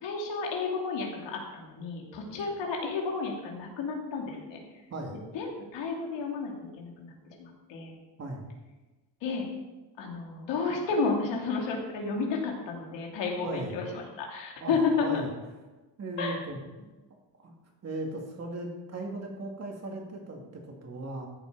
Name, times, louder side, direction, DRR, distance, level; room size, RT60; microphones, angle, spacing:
voice 1, 0.0-4.6 5.3-7.9 9.2-9.5 10.0-15.1 16.2-16.4, left 4 dB, 80° left, 0 dB, 2.9 m, -32 dB
voice 2, 13.4-13.8 14.6-14.7 15.0-15.3 16.0-16.6 17.4-17.5 17.8-21.3, right 2 dB, 35° right, 1 dB, 2.4 m, -37 dB
14.0 x 7.9 x 4.8 m, 1.2 s
cardioid pair, 150°, 43 cm